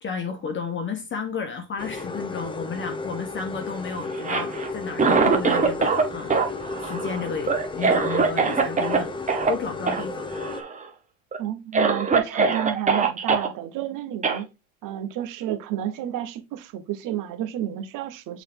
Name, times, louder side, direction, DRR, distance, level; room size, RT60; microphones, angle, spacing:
voice 1, 0.0-6.4 6.8-9.1 9.5-10.3, left 5 dB, 25° left, 1.1 m, -32 dB
sound 1, 1.8-10.6, left 3 dB, 10° left, 0.7 m, -33 dB
Cough, 4.1-6.0 6.3-9.0 9.3-9.5 9.9-10.0 10.3-10.8 11.3-11.4 11.7-13.5 14.2-14.4, right 4 dB, 15° right, 1.1 m, -22 dB
voice 2, 11.4-14.5 14.8-18.4, right 11 dB, 45° right, 1.0 m, -31 dB
6.5 x 4.1 x 3.6 m
supercardioid pair, 120°, 43 cm